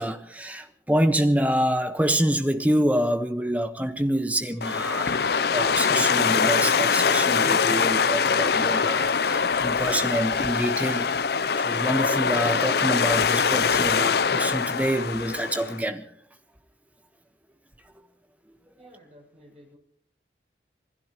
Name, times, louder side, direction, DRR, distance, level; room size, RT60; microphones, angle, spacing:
voice 1, 0.0-16.0, equal, 10° right, 1.2 m, -26 dB
sound 1, 4.6-15.8, left 5 dB, 60° left, 0.6 m, -23 dB
voice 2, 18.8-19.8, equal, 35° right, 6.6 m, -52 dB
27.0 x 17.5 x 3.1 m
head